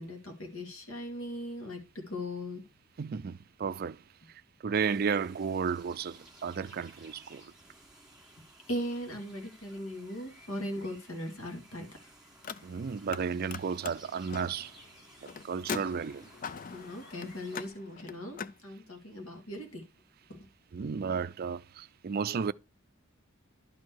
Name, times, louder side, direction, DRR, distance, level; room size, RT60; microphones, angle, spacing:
voice 1, 0.0-2.6 8.7-12.1 16.7-19.8 20.3-20.5, equal, 75° left, 2.3 m, -39 dB
voice 2, 3.0-4.0 4.3-7.5 12.6-14.7 15.4-16.3 20.7-22.5, right 6 dB, 45° right, 0.4 m, -33 dB
sound 1, 4.7-17.7, right 1 dB, 5° right, 2.3 m, -57 dB
Car, 12.3-13.2 13.5-18.6, left 6 dB, 40° left, 0.4 m, -42 dB
11.5 x 4.6 x 4.6 m
head